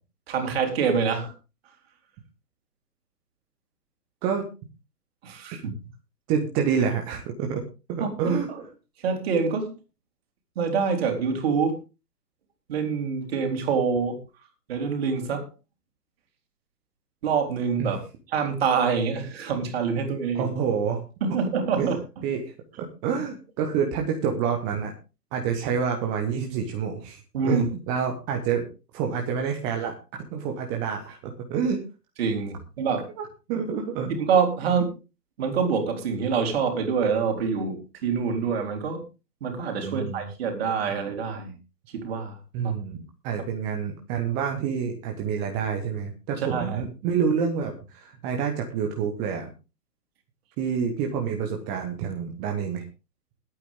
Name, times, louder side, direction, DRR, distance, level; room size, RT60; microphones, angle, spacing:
voice 1, 0.3-1.3 5.2-5.7 8.0-8.6 9.0-9.7 10.6-11.8 12.7-14.2 14.7-15.5 17.2-18.0 18.3-20.5 21.2-22.0 27.3-27.6 32.2-33.1 34.2-34.9 35.4-39.0 39.4-41.6 41.9-42.7 46.5-46.8, right 6 dB, 40° right, 4 dB, 3.6 m, -26 dB
voice 2, 6.3-7.6 7.9-8.5 17.8-17.9 20.3-21.0 21.8-21.9 22.2-24.9 25.3-28.7 28.9-29.9 30.3-31.8 33.2-34.1 39.8-40.2 42.5-49.5 50.6-52.8, right 7 dB, 10° right, 2 dB, 0.7 m, -28 dB
20.5 x 8.8 x 3.6 m, 0.31 s
figure-of-eight pair, 130°, 48 cm